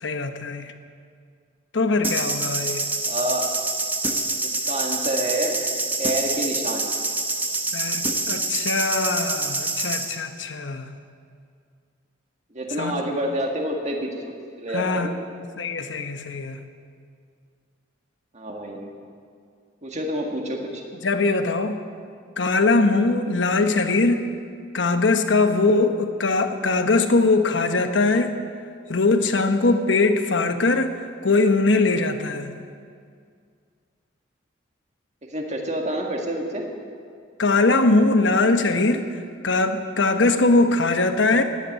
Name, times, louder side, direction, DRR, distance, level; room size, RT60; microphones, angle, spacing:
voice 1, 0.0-0.7 1.7-2.8 7.7-10.9 12.8-13.0 14.7-15.1 15.6-16.6 21.0-21.8 22.4-24.3 24.7-28.3 28.9-32.5 37.4-39.0 39.4-41.4, left 3 dB, 70° left, 8 dB, 1.1 m, -21 dB
sound 1, 2.0-10.2, right 2 dB, 10° right, 0.9 m, -26 dB
voice 2, 3.1-3.5 4.4-5.5 6.0-6.9 12.5-14.2 14.6-15.2 18.3-18.9 19.8-20.8 35.3-36.7, right 1 dB, 35° right, 1 dB, 1.8 m, -28 dB
15.0 x 11.0 x 8.6 m, 2.2 s
head